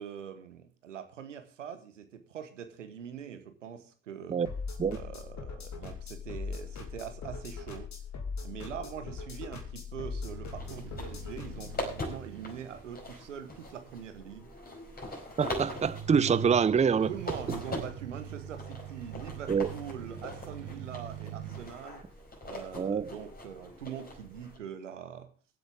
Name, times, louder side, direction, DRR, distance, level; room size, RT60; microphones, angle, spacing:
voice 1, 0.0-4.4 4.9-7.9 8.4-14.5 17.1-22.0 22.4-25.3, right 8 dB, 85° right, 1.2 m, -43 dB
sound 1, 4.5-11.8, left 5 dB, 50° left, 2.7 m, -40 dB
sound 2, 10.2-12.9 15.5-21.7, right 8 dB, 60° right, 1.8 m, -43 dB
sound 3, 10.5-24.6, left 1 dB, 25° left, 4.9 m, -42 dB
voice 2, 15.4-17.1 19.5-19.7 22.8-23.1, right 6 dB, 20° right, 0.6 m, -25 dB
23.5 x 8.1 x 3.5 m
figure-of-eight pair, 50°, 36 cm